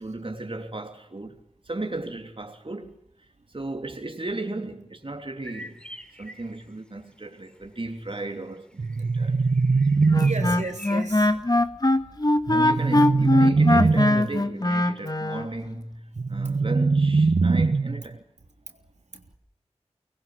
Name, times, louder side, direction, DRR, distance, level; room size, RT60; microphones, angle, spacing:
voice 1, 0.0-1.4 1.6-3.0 3.5-5.8 6.2-9.4 10.1-10.5 12.5-18.2, right 2 dB, 50° right, 3.2 m, -35 dB
sound 1, 5.4-6.7 7.4-7.5 7.9-11.3, equal, 10° left, 5.8 m, -44 dB
sound 2, 8.8-10.8 12.5-14.4 16.2-18.1, right 4 dB, 75° right, 0.9 m, -22 dB
Wind instrument woodwind instrument, 10.1-15.5, left 1 dB, 35° left, 1.6 m, -21 dB
voice 2, 10.2-11.4 18.7-18.8 19.1-19.2, right 3 dB, 90° right, 3.3 m, -35 dB
25.0 x 20.5 x 7.7 m
wide cardioid pair, 55°, 12 cm